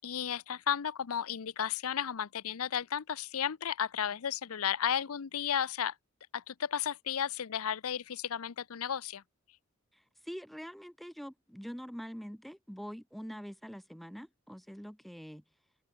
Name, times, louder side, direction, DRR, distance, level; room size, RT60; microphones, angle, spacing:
voice 1, 0.0-5.9 6.3-9.2, left 8 dB, 85° left, 0.6 m, -33 dB
voice 2, 9.9-15.4, equal, ahead, 0.4 m, -45 dB
open air
head